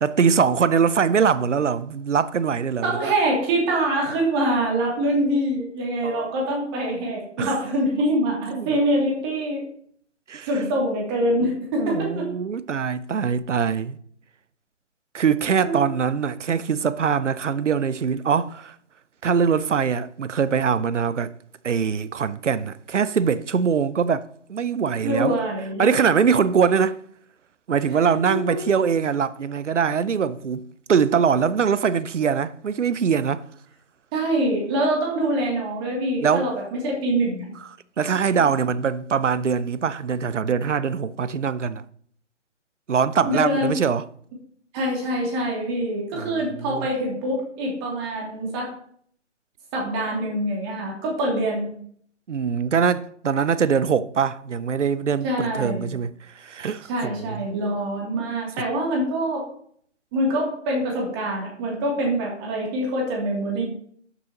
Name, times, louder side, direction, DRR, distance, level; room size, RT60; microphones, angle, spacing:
voice 1, 0.0-3.1 6.0-6.3 7.4-7.5 8.5-8.7 10.3-10.6 11.8-14.0 15.1-18.8 19.2-21.3 21.6-25.4 25.8-27.0 27.7-33.4 36.2-36.5 38.0-41.8 42.9-44.1 46.2-46.9 52.3-56.1 56.3-57.4, right 6 dB, 75° right, 0.6 m, -23 dB
voice 2, 2.8-9.6 10.5-12.3 15.6-15.9 25.0-25.9 28.3-28.6 34.1-37.5 43.2-43.7 44.7-48.7 49.7-51.7 55.2-55.9 56.9-59.4 60.1-63.6, right 1 dB, 20° right, 2.6 m, -24 dB
12.5 x 6.8 x 2.9 m
figure-of-eight pair, 145°, 36 cm